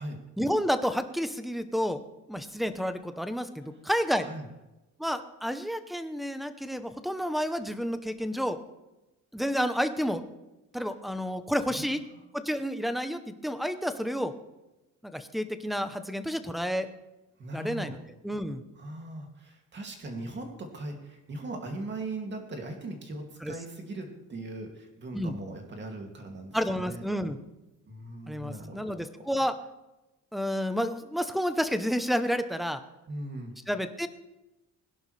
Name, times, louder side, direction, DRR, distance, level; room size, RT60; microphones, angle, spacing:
voice 1, 0.4-2.0 2.3-4.3 5.0-8.6 9.3-10.2 10.7-12.0 12.3-14.3 15.0-16.9 17.5-18.0 18.2-18.6 23.4-23.5 25.1-25.4 26.5-27.4 28.3-29.6 30.3-32.8 33.7-34.1, equal, ahead, 10 dB, 0.7 m, -30 dB
voice 2, 4.1-4.5 11.7-12.2 17.4-18.0 18.8-27.0 27.9-29.4 33.1-33.5, right 2 dB, 35° right, 2 dB, 2.4 m, -39 dB
21.5 x 11.0 x 3.3 m, 1.0 s
cardioid pair, 160°, 33 cm